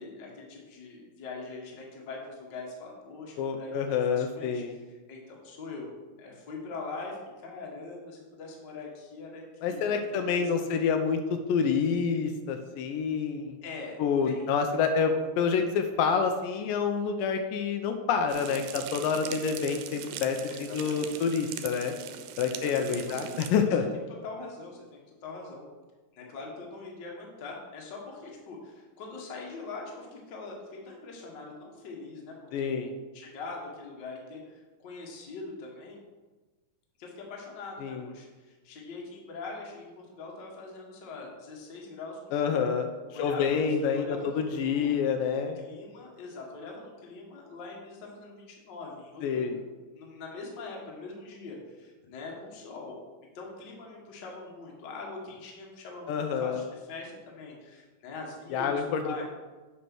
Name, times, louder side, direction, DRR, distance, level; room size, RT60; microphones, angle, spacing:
voice 1, 0.0-5.9 6.2-10.0 10.3-10.7 13.6-14.5 14.9-15.3 20.5-21.2 22.5-23.3 23.6-23.8 24.1-25.6 26.1-32.7 33.1-36.0 37.0-42.7 43.1-45.0 45.3-49.5 49.9-52.9 53.3-59.2, left 3 dB, 50° left, -1 dB, 1.4 m, -43 dB
voice 2, 3.4-4.7 9.6-13.6 14.0-21.9 22.4-23.8 32.5-32.9 37.8-38.1 42.3-45.6 49.2-49.6 56.1-56.6 58.5-59.0, left 6 dB, 85° left, 6 dB, 2.2 m, -28 dB
sound 1, 18.3-23.5, right 10 dB, 85° right, 2.3 m, -41 dB
7.8 x 4.1 x 6.0 m, 1.2 s
omnidirectional pair, 4.0 m